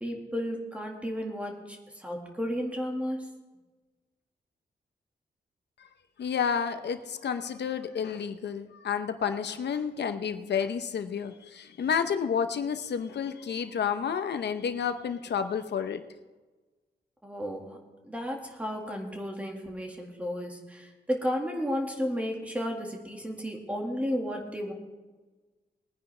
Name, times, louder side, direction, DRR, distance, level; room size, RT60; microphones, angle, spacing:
voice 1, 0.0-3.3 17.2-17.8 18.0-24.7, equal, 10° right, 1 dB, 1.9 m, -33 dB
voice 2, 6.2-16.0, left 7 dB, 90° left, 9 dB, 0.8 m, -30 dB
20.5 x 9.9 x 3.3 m, 1.3 s
wide cardioid pair, 160°, 17 cm